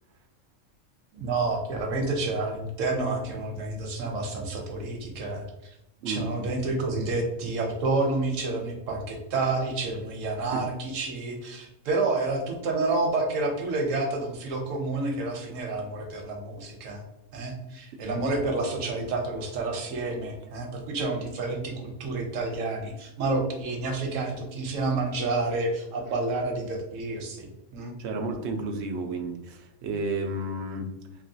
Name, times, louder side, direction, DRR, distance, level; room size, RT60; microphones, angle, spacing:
voice 1, 1.1-5.4 6.1-17.0 17.3-27.9, right 3 dB, 90° right, 2 dB, 1.1 m, -29 dB
voice 2, 28.0-30.9, right 2 dB, 65° right, 4 dB, 0.8 m, -31 dB
3.0 x 2.8 x 2.7 m, 0.85 s
omnidirectional pair, 1.3 m